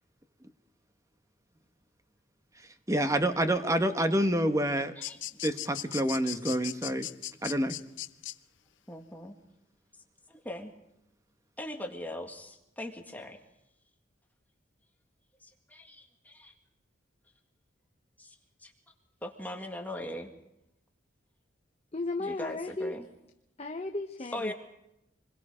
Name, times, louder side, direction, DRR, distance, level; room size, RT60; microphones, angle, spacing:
voice 1, 2.9-4.9 5.4-7.1 7.4-7.8, right 1 dB, 15° right, 8 dB, 1.3 m, -27 dB
sound 1, 5.0-8.4, left 14 dB, 70° left, 0.7 m, -38 dB
voice 2, 5.9-6.3 8.9-9.4 10.3-10.7 11.6-13.4 15.4-16.5 18.2-18.4 18.6-18.7 19.2-20.3 22.2-23.1 24.3-24.5, left 1 dB, 10° left, 3 dB, 1.9 m, -40 dB
voice 3, 21.9-23.0 23.6-24.5, left 2 dB, 30° left, 5 dB, 0.9 m, -35 dB
27.0 x 21.5 x 5.0 m, 0.86 s
head